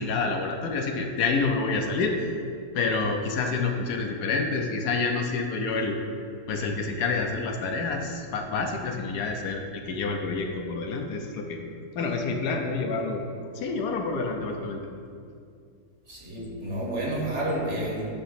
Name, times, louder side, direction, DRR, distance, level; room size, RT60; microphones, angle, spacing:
voice 1, 0.0-2.1 2.7-6.0 6.5-11.6 12.0-13.2 13.5-14.8, left 4 dB, 75° left, 3 dB, 1.1 m, -28 dB
voice 2, 16.1-18.1, right 1 dB, 45° right, -3 dB, 1.3 m, -30 dB
8.4 x 3.0 x 5.8 m, 2.3 s
omnidirectional pair, 1.8 m